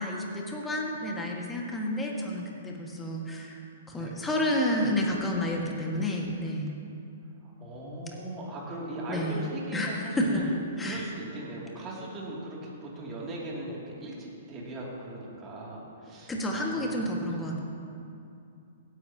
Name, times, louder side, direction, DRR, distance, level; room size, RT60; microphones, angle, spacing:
voice 1, 0.0-3.6 3.9-6.7 9.1-9.4 9.7-10.4 10.8-11.1 16.3-17.6, left 1 dB, 10° left, -1 dB, 1.8 m, -30 dB
voice 2, 7.6-10.5 10.8-17.5, right 1 dB, 25° right, -4 dB, 2.8 m, -39 dB
16.5 x 10.0 x 3.0 m, 2.6 s
hypercardioid pair, 120°, 0 cm